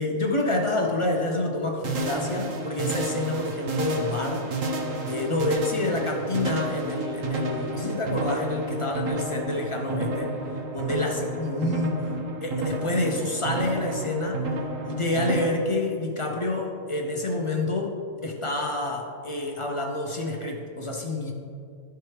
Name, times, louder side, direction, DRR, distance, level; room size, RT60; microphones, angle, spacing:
voice 1, 0.0-4.4 5.0-10.3 10.7-14.5 14.8-18.0 18.2-21.3, left 2 dB, 45° left, 1 dB, 0.4 m, -28 dB
sound 1, 1.8-15.5, right 2 dB, 80° right, 1.2 m, -31 dB
12.0 x 4.6 x 3.2 m, 2.4 s
omnidirectional pair, 1.4 m